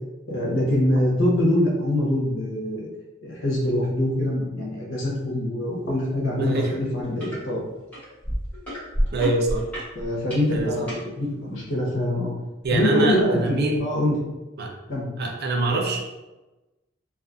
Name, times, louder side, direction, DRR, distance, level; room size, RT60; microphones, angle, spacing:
voice 1, 0.3-2.9 3.2-7.6 9.9-12.3 12.7-14.2 14.9-15.1, left 1 dB, 75° left, -3 dB, 0.8 m, -24 dB
voice 2, 6.4-6.7 9.1-9.6 10.5-10.9 12.6-13.8 14.6-14.7 15.2-16.0, right 2 dB, 55° right, 1 dB, 0.5 m, -24 dB
sound 1, 6.5-6.7 7.0-7.4 7.9-11.0 11.7-11.8, equal, 10° left, 1.1 m, -29 dB
2.4 x 2.3 x 2.4 m, 1.1 s
head